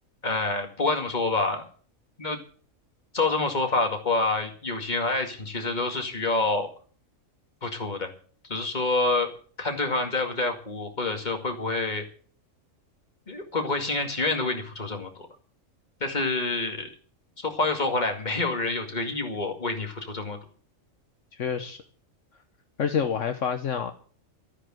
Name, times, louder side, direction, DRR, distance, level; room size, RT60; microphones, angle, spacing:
voice 1, 0.2-1.7 2.2-2.4 3.1-6.7 7.6-8.1 8.4-9.3 9.6-12.1 13.3-15.3 16.0-16.9 17.4-20.4, left 3 dB, 35° left, 4 dB, 2.3 m, -27 dB
voice 2, 21.3-21.8 22.8-23.9, left 7 dB, 70° left, 8 dB, 1.3 m, -27 dB
13.0 x 9.9 x 7.7 m, 0.44 s
omnidirectional pair, 1.4 m